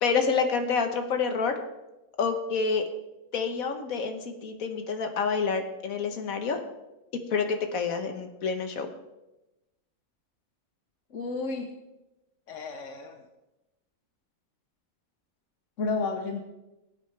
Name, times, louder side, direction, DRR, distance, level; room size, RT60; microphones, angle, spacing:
voice 1, 0.0-1.5 2.2-2.8 3.3-6.6 7.3-8.9, left 5 dB, 90° left, 6 dB, 1.6 m, -28 dB
voice 2, 11.1-11.7 12.5-13.2 15.8-16.4, left 3 dB, 65° left, 4 dB, 1.3 m, -32 dB
19.0 x 8.8 x 3.3 m, 0.98 s
omnidirectional pair, 1.4 m